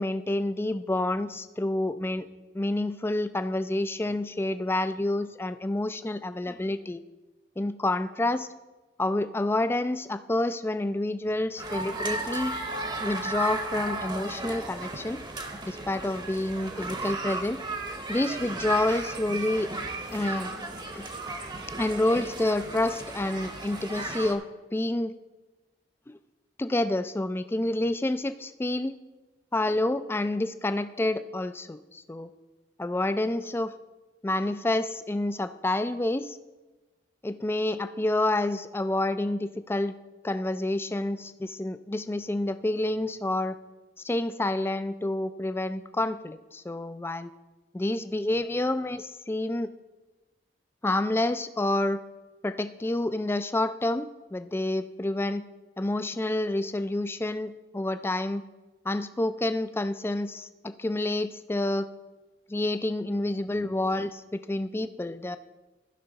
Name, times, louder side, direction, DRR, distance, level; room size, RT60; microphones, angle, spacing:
voice 1, 0.0-2.3 2.5-7.0 7.6-8.5 9.0-12.5 13.0-15.2 15.6-17.6 18.1-19.7 20.1-20.5 20.9-21.1 21.7-24.4 24.7-25.1 26.1-26.2 26.6-28.9 29.5-32.3 32.8-33.7 34.2-36.4 37.2-39.9 40.2-43.6 44.0-47.3 47.7-49.7 50.8-52.0 52.4-55.4 55.8-58.4 58.9-61.9 62.5-65.4, left 1 dB, 15° left, 12 dB, 0.3 m, -28 dB
sound 1, 11.6-24.3, right 2 dB, 25° right, 0.9 m, -35 dB
15.0 x 5.6 x 4.0 m, 1.1 s
head